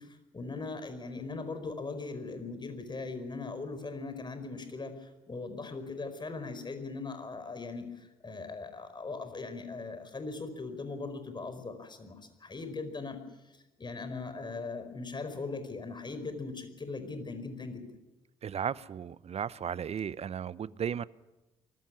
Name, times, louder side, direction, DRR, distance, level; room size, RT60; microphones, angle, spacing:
voice 1, 0.0-13.2 13.8-17.8, left 3 dB, 30° left, 9 dB, 4.9 m, -39 dB
voice 2, 18.4-21.1, right 8 dB, 45° right, 19 dB, 0.8 m, -35 dB
24.0 x 13.0 x 9.8 m, 1.0 s
hypercardioid pair, 50°, 15 cm